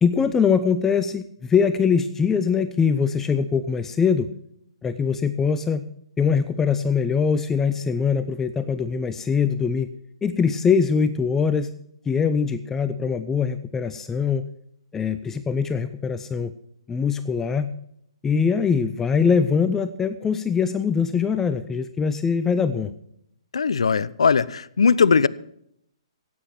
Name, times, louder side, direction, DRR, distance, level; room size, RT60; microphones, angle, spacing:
voice 1, 0.0-4.3 4.8-5.8 6.2-9.9 10.2-11.7 12.1-14.4 14.9-16.5 16.9-17.7 18.2-22.9, left 6 dB, 10° left, 0.5 m, -22 dB
voice 2, 23.5-25.3, left 5 dB, 80° left, 0.6 m, -19 dB
15.5 x 8.9 x 5.9 m
hypercardioid pair, 135°, 3 cm